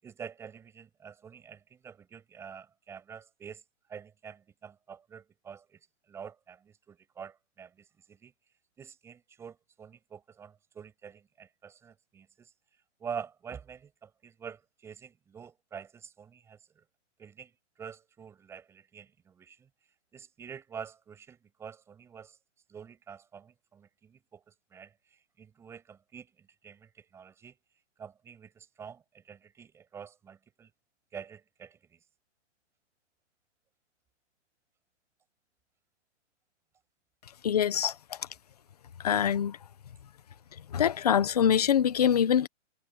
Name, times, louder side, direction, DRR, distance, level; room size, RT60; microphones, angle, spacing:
voice 1, 0.0-3.6 3.9-5.8 6.1-8.3 8.8-12.5 13.0-16.8 17.2-19.7 20.1-22.4 22.7-27.6 28.0-30.7 31.1-32.0, right 7 dB, 5° right, 6.8 m, -47 dB
voice 2, 37.4-38.2 39.0-39.6 40.7-42.5, left 9 dB, 30° left, 1.0 m, -24 dB
hypercardioid pair, 180°, 38 cm